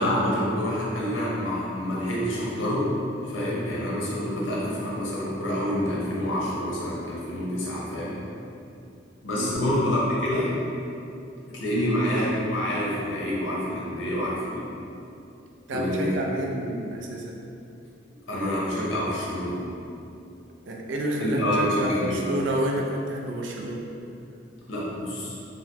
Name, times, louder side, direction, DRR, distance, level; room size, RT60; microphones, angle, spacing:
voice 1, 0.0-3.0 3.2-8.2 9.2-10.5 11.5-14.7 15.7-16.2 18.3-19.6 21.2-22.2 24.7-25.3, equal, 90° left, -6 dB, 0.8 m, -27 dB
voice 2, 9.3-9.7 15.7-17.4 20.7-23.9, right 1 dB, 70° right, -1 dB, 0.4 m, -29 dB
3.8 x 2.1 x 2.8 m, 2.6 s
head